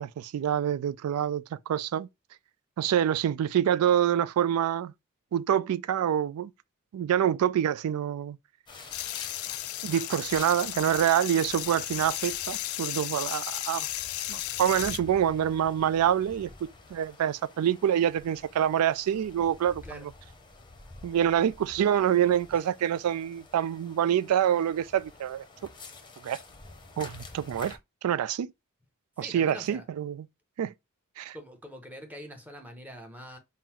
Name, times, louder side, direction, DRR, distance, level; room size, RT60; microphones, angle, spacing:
voice 1, 0.0-2.1 2.8-4.9 5.3-6.5 6.9-8.4 9.8-13.9 14.3-20.1 21.0-25.4 26.2-26.4 27.0-28.5 29.2-30.3 30.6-30.7 31.2-31.4, right 10 dB, 80° right, 0.3 m, -26 dB
sound 1, 8.7-27.8, left 3 dB, 20° left, 0.7 m, -49 dB
sound 2, 8.9-15.0, left 14 dB, 70° left, 0.4 m, -34 dB
voice 2, 29.2-29.9 31.3-33.4, equal, 5° right, 0.8 m, -44 dB
3.8 x 2.1 x 4.3 m
head